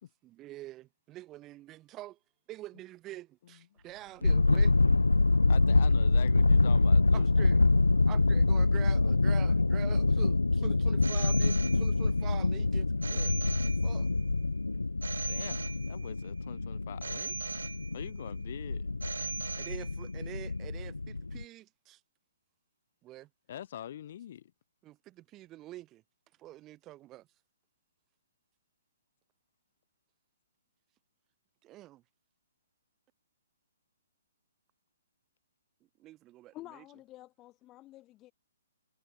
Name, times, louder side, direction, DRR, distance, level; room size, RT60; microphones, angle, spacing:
voice 1, 0.2-2.2 2.5-4.8 7.1-7.7 8.1-13.4 13.8-14.1 19.6-22.0 23.0-23.3 24.8-26.0 26.4-27.3 31.6-32.0 36.0-36.8, right 15 dB, 25° right, 4.3 m, -46 dB
sound 1, 4.2-21.4, left 3 dB, 90° left, 0.3 m, -26 dB
voice 2, 5.5-7.3 15.3-17.6 17.9-19.0 23.5-24.5, left 11 dB, 50° left, 2.2 m, -44 dB
Telephone, 11.0-12.3 13.0-14.3 15.0-16.3 17.0-18.3 19.0-20.3, right 5 dB, 75° right, 0.7 m, -40 dB
voice 3, 36.5-38.3, left 16 dB, 25° left, 0.9 m, -50 dB
figure-of-eight pair, 130°, 0 cm